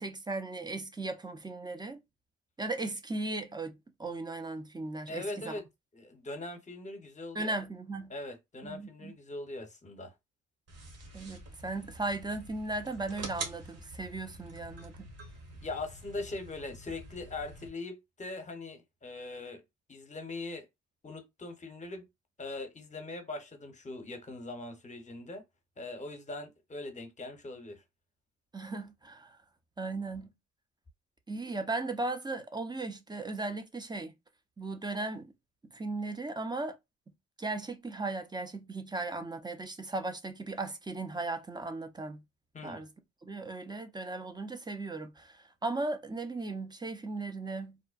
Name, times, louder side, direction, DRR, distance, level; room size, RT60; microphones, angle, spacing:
voice 1, 0.0-2.0 2.6-5.6 7.3-8.1 8.6-9.1 11.1-15.1 28.5-29.4 29.8-30.3 31.3-34.1 34.6-35.3 35.7-36.8 37.4-42.2 42.6-42.9 43.2-47.8, right 2 dB, 15° right, 0.4 m, -37 dB
voice 2, 5.1-5.6 5.9-7.6 8.1-10.1 15.6-19.6 19.9-20.6 21.0-22.1 22.4-25.4 25.8-27.8 42.5-42.8, left 2 dB, 25° left, 0.7 m, -41 dB
sound 1, 10.7-17.7, right 2 dB, 55° right, 0.9 m, -46 dB
2.6 x 2.1 x 2.4 m
cardioid pair, 90°, 30 cm